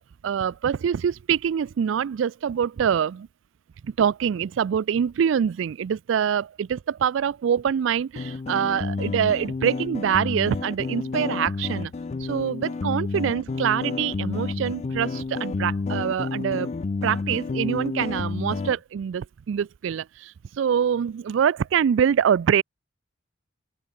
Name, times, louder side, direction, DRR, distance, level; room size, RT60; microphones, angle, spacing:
voice 1, 0.0-3.3 3.9-11.9 12.2-16.7 17.0-22.6, right 8 dB, 70° right, 0.3 m, -25 dB
sound 1, 8.2-18.8, left 4 dB, 35° left, 0.3 m, -30 dB
open air
head